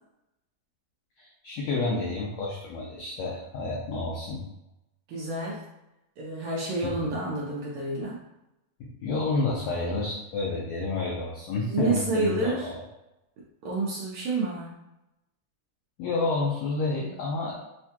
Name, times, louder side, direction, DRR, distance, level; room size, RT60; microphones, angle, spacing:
voice 1, 1.2-4.4 6.8-7.1 8.8-12.8 16.0-17.6, left 3 dB, 85° left, -3 dB, 1.5 m, -30 dB
voice 2, 5.1-5.6 6.2-8.2 11.7-12.7 13.6-14.8, right 2 dB, 75° right, -4 dB, 1.7 m, -29 dB
6.5 x 2.2 x 2.8 m, 0.92 s
omnidirectional pair, 3.9 m